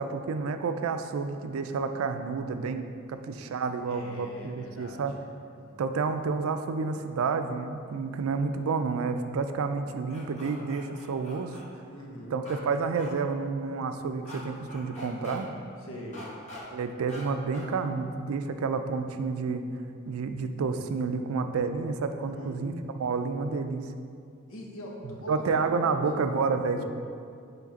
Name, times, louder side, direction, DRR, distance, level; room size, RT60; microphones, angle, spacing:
voice 1, 0.0-5.1 5.8-11.6 12.3-15.5 16.7-19.6 20.1-23.9 25.3-26.8, right 4 dB, 85° right, 8 dB, 0.4 m, -30 dB
voice 2, 3.8-5.0 5.5-5.8 11.9-12.4 15.8-16.2 22.2-23.2 24.5-26.0 26.6-26.8, left 1 dB, 90° left, -1 dB, 1.0 m, -43 dB
sound 1, 10.1-11.6 12.4-12.6 12.9-13.1 14.2-14.4 14.7-15.4 16.1-16.6 17.1-17.2 17.5-17.7, left 1 dB, 35° left, 1.1 m, -44 dB
7.2 x 3.3 x 4.0 m, 2.3 s
head